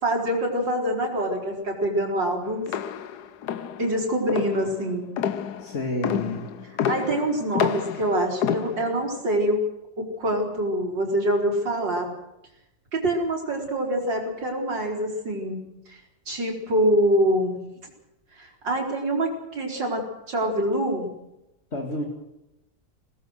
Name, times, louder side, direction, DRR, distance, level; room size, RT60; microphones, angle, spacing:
voice 1, 0.0-2.7 3.8-5.0 6.9-9.6 10.0-12.1 12.9-16.0 16.3-17.6 18.4-21.1, right 1 dB, 75° right, 0 dB, 4.9 m, -25 dB
sound 1, 2.7-9.1, left 8 dB, 65° left, 1.4 m, -29 dB
voice 2, 5.6-6.5 21.7-22.0, left 1 dB, 35° left, 1 dB, 2.8 m, -29 dB
24.0 x 18.5 x 6.4 m, 0.91 s
omnidirectional pair, 2.0 m